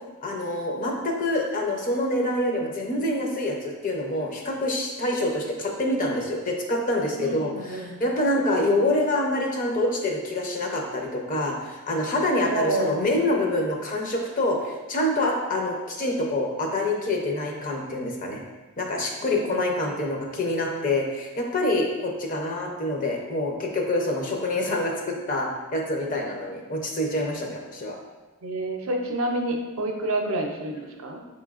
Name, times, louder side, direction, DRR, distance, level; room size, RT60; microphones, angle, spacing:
voice 1, 0.2-18.4 18.8-28.0, left 1 dB, 40° left, 1 dB, 0.6 m, -26 dB
voice 2, 7.2-8.0 12.4-13.2 19.2-19.7 28.4-31.2, right 1 dB, 70° right, 2 dB, 0.5 m, -29 dB
5.4 x 3.1 x 2.4 m, 1.2 s
head